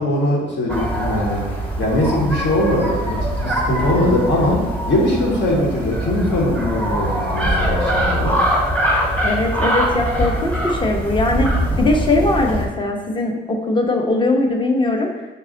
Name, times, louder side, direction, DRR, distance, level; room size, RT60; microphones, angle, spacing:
voice 1, 0.0-8.4, left 1 dB, 65° left, -2 dB, 1.3 m, -21 dB
sound 1, 0.7-12.7, right 1 dB, 5° left, 1.1 m, -22 dB
voice 2, 9.2-11.5 11.8-15.1, left 2 dB, 25° left, 2 dB, 0.7 m, -20 dB
5.7 x 2.3 x 3.8 m, 1.1 s
cardioid pair, 90°, 20 cm